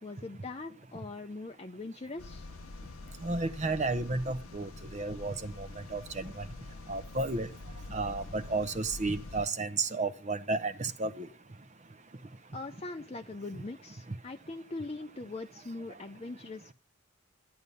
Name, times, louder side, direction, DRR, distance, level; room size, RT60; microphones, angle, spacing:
voice 1, 0.0-2.5 12.5-16.7, left 2 dB, 30° left, 5 dB, 0.6 m, -41 dB
sound 1, 2.2-9.5, left 2 dB, 85° left, 0.8 m, -46 dB
voice 2, 3.2-6.3 6.9-7.5 7.9-11.3, right 3 dB, 35° right, 10 dB, 0.8 m, -32 dB
14.0 x 9.6 x 5.4 m, 0.37 s
head